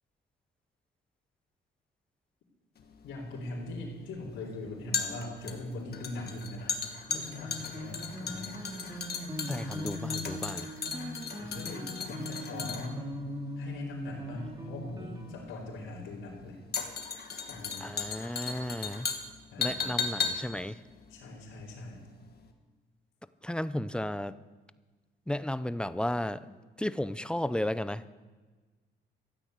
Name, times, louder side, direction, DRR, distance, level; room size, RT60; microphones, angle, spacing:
sound 1, 2.8-22.1 22.3-22.5, left 5 dB, 50° left, 1.6 m, -37 dB
voice 1, 3.0-6.8 7.1-8.5 11.4-13.0 13.6-16.6 17.5-17.9 19.5-19.9 21.1-22.0, left 2 dB, 85° left, -7 dB, 3.2 m, -41 dB
sound 2, 7.1-15.4, left 1 dB, 20° right, 2.3 m, -40 dB
voice 2, 9.5-10.7 17.8-19.1 19.6-20.8 23.4-24.3 25.3-28.0, left 1 dB, 5° left, 14 dB, 0.6 m, -34 dB
13.5 x 9.0 x 8.2 m, 1.3 s
cardioid pair, 90°, 20 cm